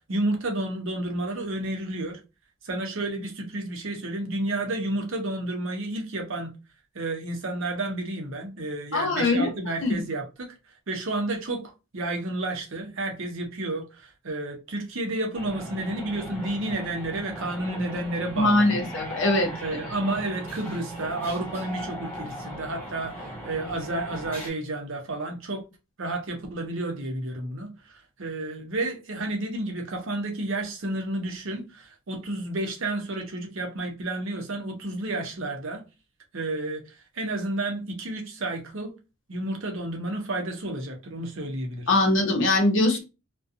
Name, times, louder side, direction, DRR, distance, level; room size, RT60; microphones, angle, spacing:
voice 1, 0.1-2.2 2.6-6.5 6.9-10.5 10.9-18.9 19.6-25.6 26.0-35.8 36.3-38.9 39.3-41.9, right 2 dB, 60° right, 0.7 m, -31 dB
voice 2, 8.9-9.5 9.8-10.0 18.4-19.5 41.9-43.0, left 2 dB, 55° left, 0.8 m, -22 dB
sound 1, 15.3-24.5, right 1 dB, 10° left, 1.1 m, -38 dB
2.4 x 2.2 x 2.6 m
head